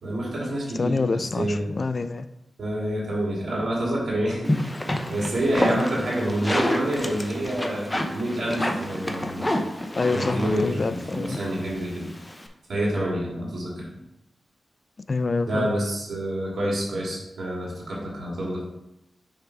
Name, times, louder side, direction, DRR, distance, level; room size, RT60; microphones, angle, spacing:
voice 1, 0.0-1.6 2.6-9.4 10.1-12.1 12.7-13.9 15.5-18.6, right 1 dB, 70° right, -4 dB, 2.2 m, -28 dB
voice 2, 0.8-2.3 5.7-5.8 10.0-11.4 15.1-15.7, left 3 dB, 45° left, 11 dB, 0.3 m, -26 dB
sound 1, 4.4-12.5, left 1 dB, 15° left, 0.7 m, -29 dB
6.4 x 3.6 x 4.6 m, 0.84 s
cardioid pair, 80°, 0 cm